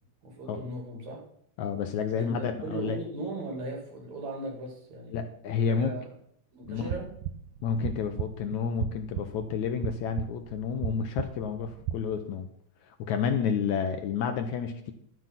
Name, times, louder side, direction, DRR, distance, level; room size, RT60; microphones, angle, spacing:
voice 1, 0.2-1.2 2.1-5.2 5.7-6.1 6.5-7.1, right 2 dB, 55° right, 0 dB, 3.8 m, -38 dB
voice 2, 1.6-3.0 5.1-6.0 6.7-6.9 7.6-12.5 12.9-14.9, left 6 dB, 70° left, 7 dB, 1.9 m, -30 dB
sound 1, 6.6-12.0, right 10 dB, 80° right, 2.1 m, -37 dB
12.0 x 7.8 x 5.7 m, 0.67 s
omnidirectional pair, 3.8 m